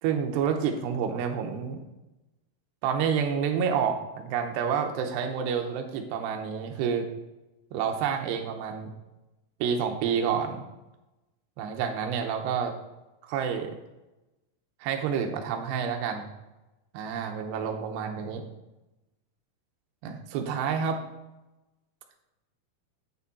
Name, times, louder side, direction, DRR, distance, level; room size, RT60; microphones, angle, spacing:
voice 1, 0.0-1.8 2.8-7.1 7.7-8.9 9.6-10.6 11.6-12.7 13.3-13.8 14.8-16.3 16.9-18.4 20.0-21.0, right 7 dB, 85° right, 4 dB, 2.5 m, -29 dB
9.0 x 6.9 x 4.2 m, 1.0 s
omnidirectional pair, 5.8 m